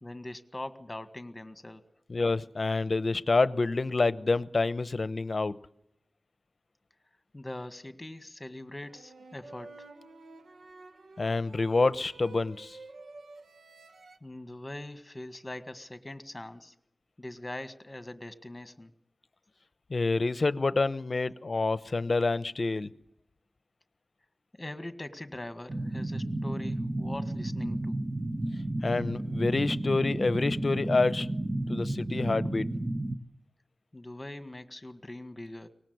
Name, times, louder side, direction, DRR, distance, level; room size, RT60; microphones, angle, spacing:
voice 1, 0.0-1.8 7.3-9.9 14.2-16.8 17.2-18.9 24.5-28.0 33.9-35.7, left 1 dB, 20° left, 1.7 m, -42 dB
voice 2, 2.1-5.6 11.2-12.8 19.9-22.9 28.8-31.3 31.7-32.7, left 3 dB, 45° left, 0.9 m, -27 dB
sound 1, 8.9-14.2, right 3 dB, 85° right, 1.4 m, -50 dB
sound 2, 25.7-33.2, right 1 dB, 30° right, 1.3 m, -32 dB
24.0 x 19.0 x 8.1 m
wide cardioid pair, 110°, 0 cm